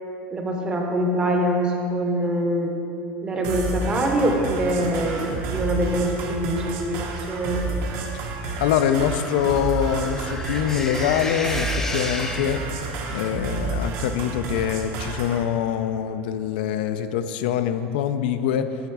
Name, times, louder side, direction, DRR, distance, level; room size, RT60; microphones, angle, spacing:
voice 1, 0.3-2.7 3.2-7.6, right 1 dB, 20° right, 1 dB, 0.7 m, -24 dB
sound 1, 3.4-15.4, right 4 dB, 50° right, 0.9 m, -30 dB
voice 2, 8.6-12.6 13.1-18.8, left 9 dB, 85° left, 10 dB, 0.4 m, -24 dB
sound 2, 8.7-13.0, left 2 dB, 10° left, 0.4 m, -33 dB
9.3 x 4.0 x 4.6 m, 2.9 s
cardioid pair, 160°, 5 cm